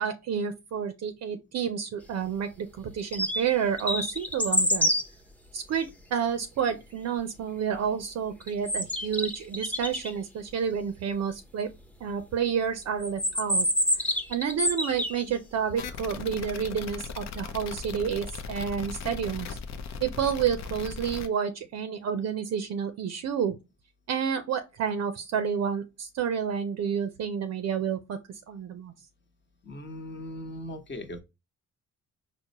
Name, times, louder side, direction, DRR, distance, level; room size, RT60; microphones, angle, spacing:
voice 1, 0.0-4.9 5.5-11.7 12.0-13.7 14.3-19.6 20.0-23.6 24.1-28.2 28.5-28.9, right 7 dB, 60° right, 0.5 m, -30 dB
sound 1, 3.0-3.5 3.8-5.0 8.4-10.1 13.0-15.2, equal, 5° left, 0.6 m, -27 dB
sound 2, 15.8-21.3, left 5 dB, 65° left, 0.6 m, -38 dB
voice 2, 29.6-31.2, left 1 dB, 35° left, 1.0 m, -39 dB
4.5 x 2.0 x 2.8 m
cardioid pair, 90°, 30 cm